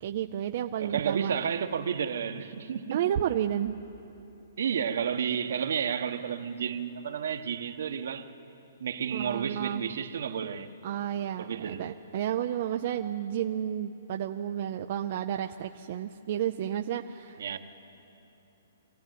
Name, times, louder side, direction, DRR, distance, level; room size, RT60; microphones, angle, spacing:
voice 1, 0.0-1.3 2.9-3.8 9.1-9.8 10.8-17.4, right 10 dB, 45° right, 0.5 m, -31 dB
voice 2, 0.8-3.0 4.6-8.3 8.8-10.7 11.4-11.9 17.4-17.6, right 7 dB, 70° right, 1.3 m, -31 dB
23.5 x 16.0 x 9.4 m
hypercardioid pair, 165°, 0 cm